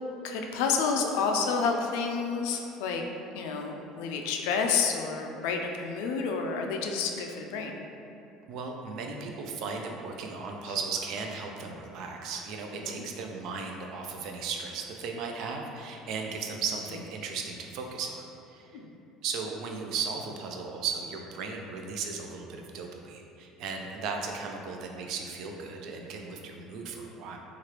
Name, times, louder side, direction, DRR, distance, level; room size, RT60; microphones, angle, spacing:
voice 1, 0.2-3.0 3.3-7.9 10.7-10.8 12.7-13.0 18.7-18.9, left 5 dB, 85° left, 3 dB, 0.3 m, -29 dB
voice 2, 8.5-18.8 19.2-27.4, right 5 dB, 60° right, 2 dB, 0.3 m, -36 dB
3.1 x 2.4 x 2.9 m, 2.8 s
cardioid pair, 130°, 0 cm